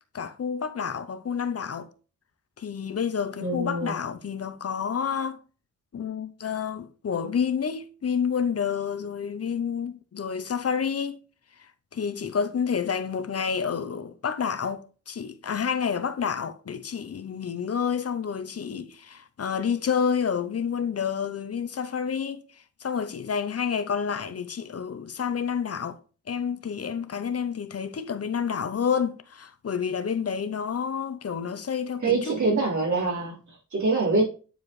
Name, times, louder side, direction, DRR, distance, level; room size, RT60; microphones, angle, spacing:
voice 1, 0.1-1.9 2.6-5.4 5.9-11.2 11.9-22.4 22.8-26.0 26.3-32.6, left 7 dB, 55° left, 0.7 m, -29 dB
voice 2, 3.4-3.9 32.0-34.2, right 3 dB, 75° right, 3.9 m, -25 dB
9.1 x 4.9 x 3.1 m
wide cardioid pair, 130°, 30 cm